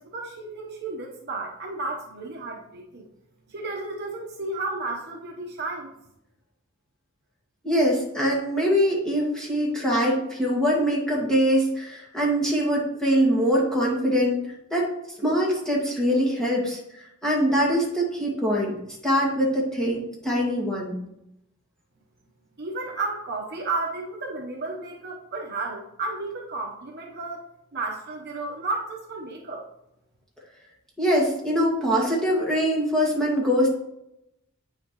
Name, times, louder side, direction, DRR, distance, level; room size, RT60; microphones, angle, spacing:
voice 1, 0.0-3.1 3.5-5.9 22.6-27.4 27.7-29.6, right 3 dB, 50° right, -1 dB, 1.1 m, -32 dB
voice 2, 7.6-14.4 14.7-14.9 15.2-18.7 19.0-21.0 31.0-33.7, equal, 5° left, -4 dB, 2.1 m, -23 dB
8.8 x 6.2 x 3.2 m, 0.82 s
head